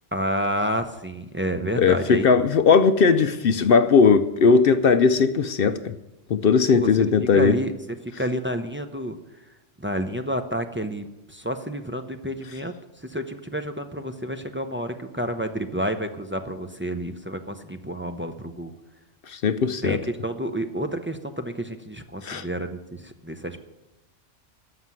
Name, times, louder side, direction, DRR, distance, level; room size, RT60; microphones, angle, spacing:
voice 1, 0.1-2.3 6.7-6.9 7.3-7.7 8.0-9.2 9.8-18.7 19.8-23.6, equal, 15° right, 6 dB, 0.5 m, -29 dB
voice 2, 1.8-6.0 6.3-7.6 19.3-20.0 22.2-22.5, left 5 dB, 60° left, 11 dB, 0.7 m, -18 dB
13.5 x 5.9 x 9.5 m, 0.98 s
omnidirectional pair, 1.3 m